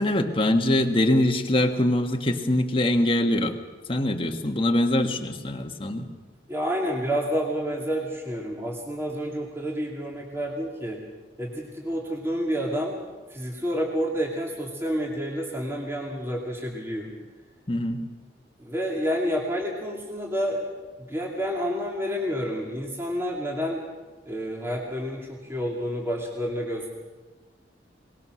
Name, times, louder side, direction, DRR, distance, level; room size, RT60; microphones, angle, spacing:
voice 1, 0.0-3.6 3.9-6.1 17.7-18.0, left 1 dB, 30° left, 5 dB, 1.5 m, -23 dB
voice 2, 6.5-11.0 11.4-13.0 13.3-17.1 18.6-20.7 21.0-23.8 24.3-26.9, equal, 15° right, -2 dB, 2.6 m, -29 dB
23.0 x 20.0 x 6.4 m, 1.3 s
head